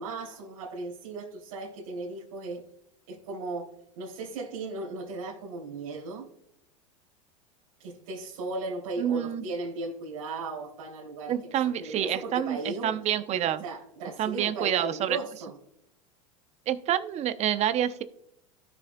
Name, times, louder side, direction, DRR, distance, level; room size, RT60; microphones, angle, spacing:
voice 1, 0.0-2.6 3.1-3.7 3.9-6.3 7.8-11.5 11.8-12.9 13.6-15.5, right 2 dB, 65° right, -5 dB, 3.2 m, -36 dB
voice 2, 9.0-9.4 11.3-13.6 14.2-15.2 16.7-18.0, right 10 dB, 40° right, 12 dB, 0.8 m, -28 dB
16.5 x 6.4 x 2.3 m, 0.76 s
hypercardioid pair, 100°, 18 cm